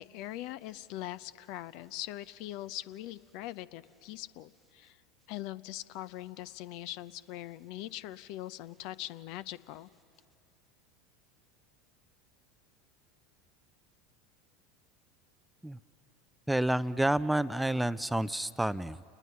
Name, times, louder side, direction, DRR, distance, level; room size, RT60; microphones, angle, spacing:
voice 1, 0.0-5.0 5.3-9.9, left 14 dB, 55° left, 17 dB, 0.5 m, -42 dB
voice 2, 16.5-19.0, right 1 dB, 5° right, 16 dB, 0.4 m, -29 dB
30.0 x 20.0 x 5.6 m, 2.5 s
figure-of-eight pair, 80°, 0 cm